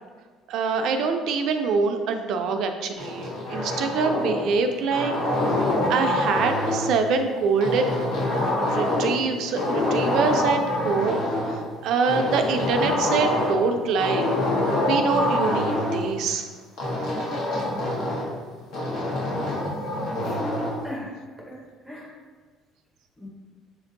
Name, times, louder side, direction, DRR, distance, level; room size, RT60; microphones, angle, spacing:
voice 1, 0.5-5.1 5.5-5.6 5.9-7.9 8.6-11.3 11.8-14.3 14.9-16.5, right 5 dB, 65° right, 5 dB, 0.4 m, -25 dB
sound 1, 3.0-4.5 4.9-7.0 7.6-9.2 9.5-11.6 12.0-13.6 14.0-16.0 16.8-18.3 18.7-20.8, left 1 dB, 70° left, 1.2 m, -25 dB
voice 2, 20.2-21.1 21.5-22.1 23.2-23.3, equal, 5° right, -1 dB, 0.8 m, -39 dB
7.1 x 2.5 x 2.6 m, 1.5 s
supercardioid pair, 95°, 0 cm